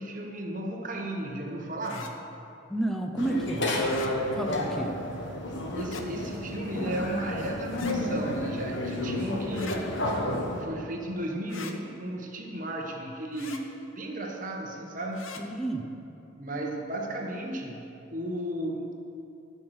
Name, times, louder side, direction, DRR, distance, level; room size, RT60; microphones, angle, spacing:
voice 1, 0.0-2.2 4.3-4.8 5.7-9.9 10.6-13.7 13.9-15.4 16.4-18.9, right 1 dB, 40° right, 1 dB, 1.1 m, -35 dB
sound 1, 1.8-2.1 3.8-4.1 5.7-6.1 7.7-8.0 9.5-9.8 11.5-11.8 13.3-13.6 15.1-15.4, left 6 dB, 90° left, 0.9 m, -42 dB
voice 2, 2.7-3.8 4.3-4.9 15.4-15.9, right 2 dB, ahead, 3 dB, 0.6 m, -30 dB
sound 2, 3.2-10.6, left 1 dB, 65° left, 1.4 m, -31 dB
13.0 x 5.7 x 6.3 m, 2.7 s
head